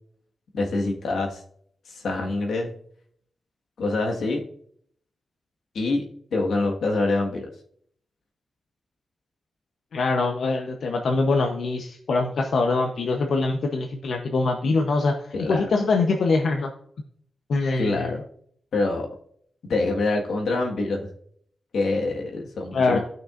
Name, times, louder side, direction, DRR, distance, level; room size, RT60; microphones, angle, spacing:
voice 1, 0.5-1.4 1.9-2.7 3.8-4.4 5.7-7.5 15.3-15.7 17.8-18.2 18.7-19.2 19.6-21.1 21.7-23.0, left 2 dB, 85° left, 1 dB, 1.5 m, -25 dB
voice 2, 9.9-16.7 17.5-18.2 22.7-23.0, left 3 dB, 65° left, 2 dB, 0.8 m, -23 dB
16.0 x 6.1 x 2.5 m, 0.64 s
wide cardioid pair, 140°, 0 cm